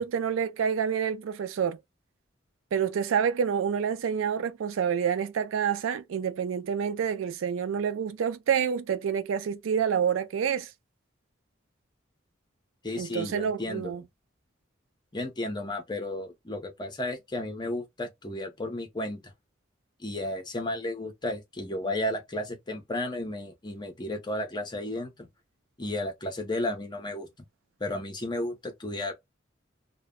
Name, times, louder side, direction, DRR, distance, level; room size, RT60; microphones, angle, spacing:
voice 1, 0.0-1.8 2.7-10.7 13.0-14.0, right 7 dB, 90° right, 0.4 m, -28 dB
voice 2, 12.8-13.9 15.1-19.3 20.0-25.3 25.8-27.3 27.8-29.1, left 1 dB, 25° left, 0.7 m, -33 dB
2.2 x 2.0 x 3.5 m
head